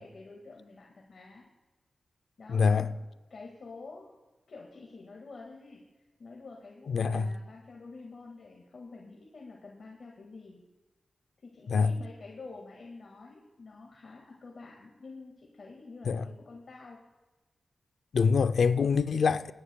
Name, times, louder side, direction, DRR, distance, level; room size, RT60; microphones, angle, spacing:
voice 1, 0.0-1.4 2.4-2.9 3.3-4.2 4.5-5.8 6.2-10.6 11.4-17.0, left 3 dB, 65° left, 1.9 m, -48 dB
voice 2, 2.5-2.9 6.9-7.3 11.7-12.0 16.1-16.3 18.1-19.5, left 5 dB, 80° left, 0.5 m, -25 dB
23.0 x 10.0 x 2.3 m
wide cardioid pair, 95°, 0 cm